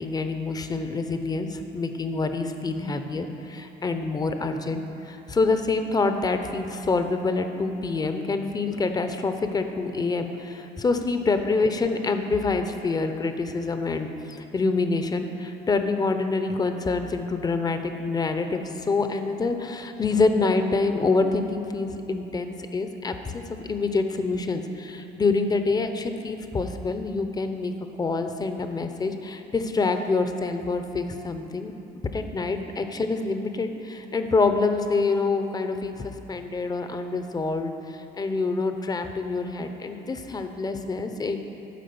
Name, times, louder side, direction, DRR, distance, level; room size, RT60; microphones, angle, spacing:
voice 1, 0.0-31.7 32.1-41.4, left 3 dB, 25° left, 7 dB, 0.7 m, -26 dB
11.5 x 4.8 x 6.9 m, 2.9 s
cardioid pair, 110°, 17 cm